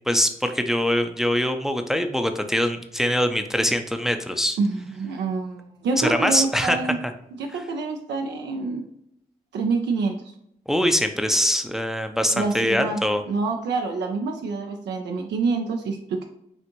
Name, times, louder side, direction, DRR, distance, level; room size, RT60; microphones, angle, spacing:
voice 1, 0.1-4.6 6.0-6.8 7.5-7.6 10.7-13.2, equal, ahead, 7 dB, 0.5 m, -23 dB
voice 2, 4.6-7.0 7.4-8.8 9.5-10.2 12.3-16.2, right 4 dB, 85° right, 3 dB, 0.5 m, -27 dB
5.8 x 2.6 x 2.9 m, 0.76 s
supercardioid pair, 40°, 18 cm